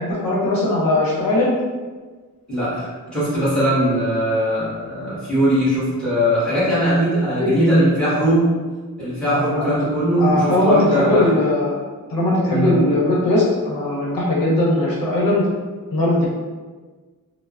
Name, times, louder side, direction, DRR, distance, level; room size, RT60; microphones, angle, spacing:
voice 1, 0.0-1.5 7.4-7.9 9.3-9.7 10.2-11.8 12.1-15.4 15.9-16.3, left 1 dB, 85° left, -5 dB, 0.8 m, -19 dB
voice 2, 2.5-8.5 9.0-11.3 12.5-12.8, right 1 dB, 5° left, -12 dB, 1.1 m, -20 dB
3.2 x 2.0 x 2.4 m, 1.4 s
wide cardioid pair, 175°, 34 cm